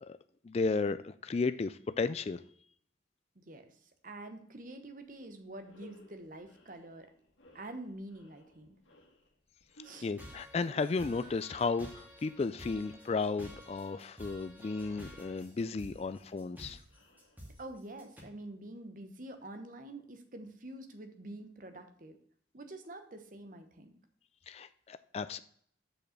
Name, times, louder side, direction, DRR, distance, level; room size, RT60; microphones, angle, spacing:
voice 1, 0.4-2.4 10.0-16.8 24.5-25.4, left 4 dB, 35° left, 12 dB, 0.3 m, -34 dB
voice 2, 3.4-3.8 4.0-7.1 7.5-8.8 9.8-10.1 17.6-22.2 22.5-24.0, right 1 dB, 45° right, 7 dB, 1.0 m, -47 dB
sound 1, 5.1-5.2 5.6-17.9, left 1 dB, 80° left, 1.8 m, -63 dB
sound 2, 9.8-18.2, equal, 10° right, 2.0 m, -51 dB
6.5 x 5.4 x 5.8 m, 0.62 s
head